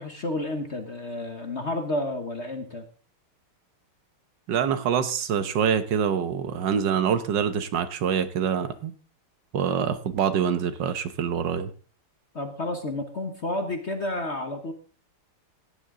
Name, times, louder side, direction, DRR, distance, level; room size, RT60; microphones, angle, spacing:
voice 1, 0.0-2.8 12.3-14.7, left 1 dB, 40° left, 6 dB, 1.1 m, -31 dB
voice 2, 4.5-8.9 9.5-11.7, right 7 dB, 60° right, 11 dB, 1.6 m, -25 dB
16.5 x 10.5 x 3.8 m, 0.38 s
omnidirectional pair, 2.4 m